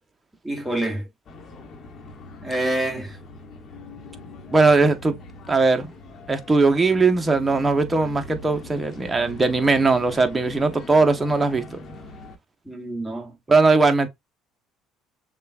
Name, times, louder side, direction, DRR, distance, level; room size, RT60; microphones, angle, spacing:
voice 1, 0.4-1.1 2.4-3.2 12.7-13.3, right 1 dB, 5° right, 1.9 m, -27 dB
sound 1, 1.3-12.4, left 2 dB, 50° left, 1.1 m, -41 dB
voice 2, 4.5-5.1 5.5-5.9 6.3-11.8 13.5-14.1, right 3 dB, 20° right, 0.9 m, -19 dB
6.5 x 2.4 x 2.2 m
hypercardioid pair, 70°, 0 cm